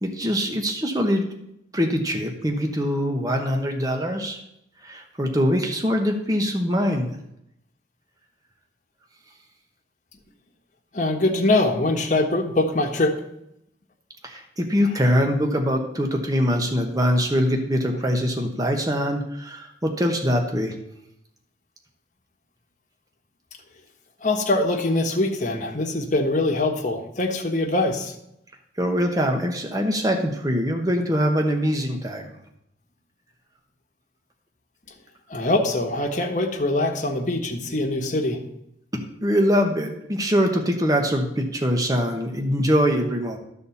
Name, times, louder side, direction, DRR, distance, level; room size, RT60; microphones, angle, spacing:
voice 1, 0.0-1.3 1.7-4.4 4.8-7.1 14.2-20.8 28.8-32.4 38.9-43.4, equal, 20° right, 3 dB, 1.0 m, -23 dB
voice 2, 10.9-13.2 24.2-28.1 35.3-38.4, left 2 dB, 40° left, 2 dB, 1.2 m, -23 dB
12.0 x 4.1 x 7.0 m, 0.79 s
head